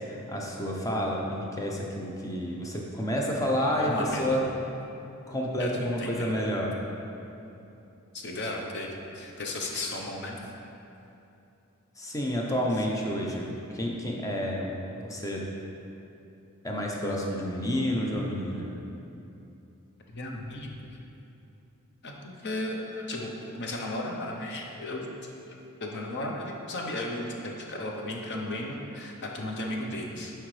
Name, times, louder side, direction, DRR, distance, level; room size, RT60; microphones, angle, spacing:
voice 1, 0.0-4.4 5.3-6.7 12.0-14.7 15.0-15.5 16.6-18.7, equal, 15° left, -2 dB, 0.7 m, -30 dB
voice 2, 3.7-4.4 5.5-6.4 7.6-7.7 8.1-10.4 20.1-20.9 22.0-25.1 25.5-30.3, left 1 dB, 50° left, 0 dB, 0.8 m, -35 dB
9.9 x 4.5 x 3.3 m, 2.8 s
head